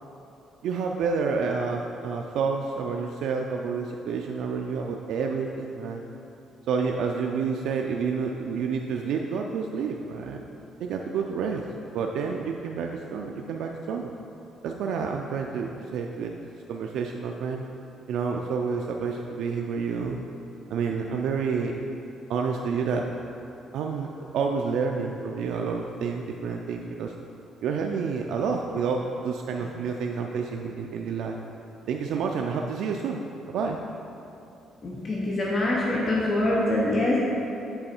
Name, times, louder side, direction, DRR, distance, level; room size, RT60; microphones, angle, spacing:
voice 1, 0.6-6.1 6.7-10.4 10.8-11.6 11.9-14.1 14.6-16.3 16.7-17.6 18.1-20.2 20.7-21.8 22.3-23.1 23.7-27.1 27.6-31.4 31.9-33.2 33.5-33.8, right 5 dB, 75° right, 1 dB, 0.3 m, -29 dB
voice 2, 34.8-37.2, left 1 dB, 35° left, -5 dB, 0.8 m, -24 dB
7.7 x 3.9 x 4.4 m, 2.8 s
cardioid pair, 145°, 0 cm